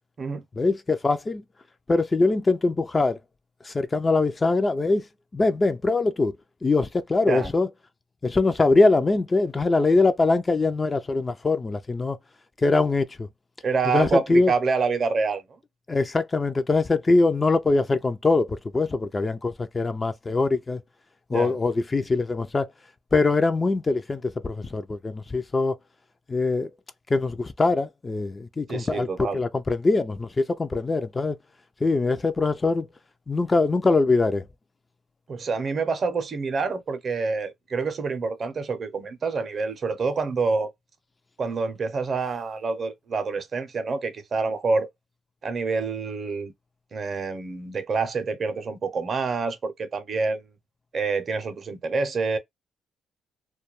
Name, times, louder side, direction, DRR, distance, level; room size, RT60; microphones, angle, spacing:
voice 1, 0.6-1.4 1.9-3.2 3.6-5.1 5.3-6.4 6.6-7.7 8.2-12.2 12.6-13.3 13.9-14.5 15.9-20.8 21.3-22.7 23.1-25.8 26.3-26.7 27.1-31.4 31.8-32.9 33.3-34.4, left 3 dB, 25° left, 0.3 m, -23 dB
voice 2, 13.6-15.5 21.3-21.5 28.7-29.4 35.3-40.7 41.4-44.9 45.4-46.5 46.9-50.5 50.9-52.4, right 4 dB, 45° right, 0.6 m, -27 dB
2.2 x 2.2 x 2.9 m
cardioid pair, 95°, 0 cm